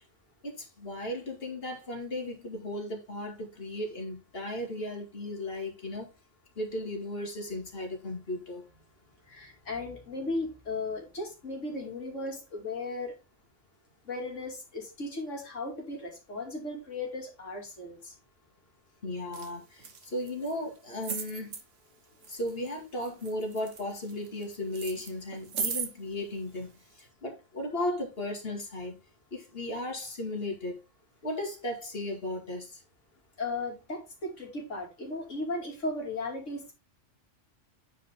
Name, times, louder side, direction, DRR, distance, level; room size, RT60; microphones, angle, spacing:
voice 1, 0.4-6.1 6.6-8.6 19.0-21.6 22.3-26.7 26.9-28.9 29.3-30.8 31.2-32.8, left 1 dB, 50° left, 2.6 m, -36 dB
voice 2, 9.3-13.2 14.0-18.1 33.4-36.7, left 2 dB, 85° left, 3.0 m, -36 dB
sound 1, 19.3-19.5 19.8-20.5 21.0-21.6 22.2-22.7 23.0-24.4 24.7-25.9 26.7-26.8, right 6 dB, 80° right, 1.6 m, -36 dB
9.2 x 5.1 x 3.6 m
omnidirectional pair, 1.2 m